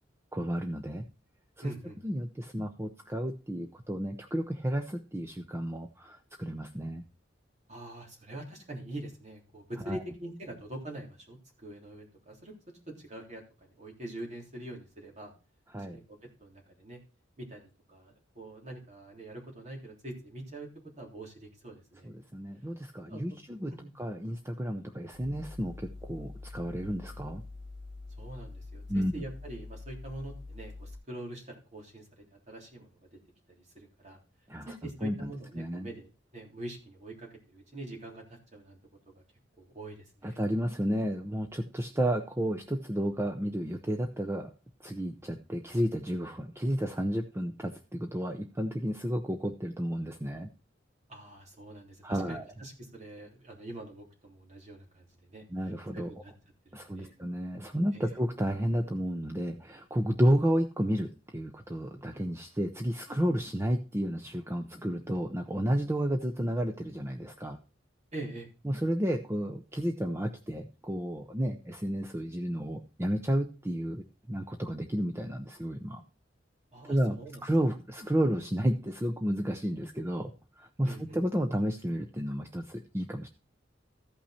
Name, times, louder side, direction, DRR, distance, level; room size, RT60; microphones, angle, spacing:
voice 1, 0.3-1.1 1.6-1.7 2.0-7.0 9.8-10.0 15.7-16.0 22.0-27.4 28.9-29.1 34.5-35.9 40.2-44.5 44.8-50.5 52.0-52.5 55.5-56.1 56.7-67.6 68.6-76.0 76.9-83.3, equal, 15° right, 4 dB, 0.6 m, -32 dB
voice 2, 1.6-2.0 7.7-12.5 13.0-15.3 15.8-17.0 17.4-17.6 17.9-20.7 21.0-22.1 23.1-23.4 23.7-23.9 28.2-32.9 33.6-34.2 34.7-36.1 36.3-38.8 39.1-39.2 39.6-40.4 51.1-55.4 55.9-56.3 56.7-57.1 57.9-58.1 68.1-68.5 76.7-77.4 80.8-81.2, right 1 dB, 40° right, 0 dB, 3.4 m, -44 dB
sound 1, 25.1-31.0, left 3 dB, 70° right, 2.1 m, -45 dB
14.0 x 5.8 x 4.3 m, 0.34 s
head